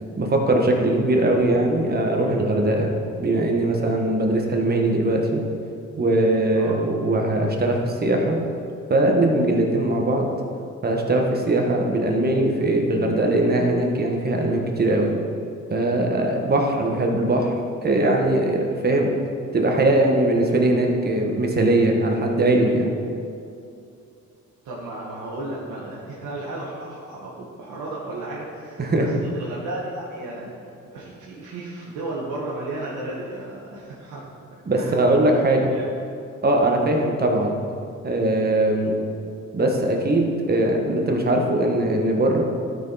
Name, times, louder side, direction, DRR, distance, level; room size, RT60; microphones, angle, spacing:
voice 1, 0.2-2.9 3.2-5.4 6.0-8.4 8.9-10.3 10.8-15.1 15.7-17.5 17.8-19.1 19.5-22.9 28.8-29.1 34.7-35.7 36.4-37.6 38.0-38.9 39.5-42.4, right 1 dB, 30° right, 1 dB, 1.4 m, -20 dB
voice 2, 24.6-30.5 30.8-34.2 34.7-35.0 35.7-35.9, right 2 dB, 75° right, -6 dB, 1.5 m, -34 dB
12.0 x 4.7 x 4.1 m, 2.5 s
cardioid pair, 90°, 30 cm